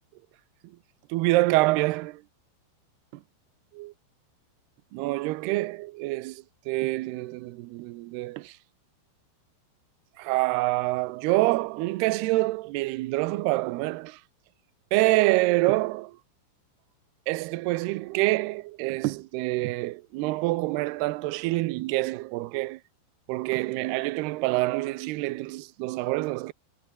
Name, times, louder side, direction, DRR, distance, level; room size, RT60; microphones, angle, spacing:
voice 1, 1.1-2.2 3.8-3.9 4.9-8.5 10.2-14.2 14.9-16.2 17.3-22.8 23.3-26.5, right 20 dB, 75° right, 2.5 m, -26 dB
omnidirectional pair, 5.5 m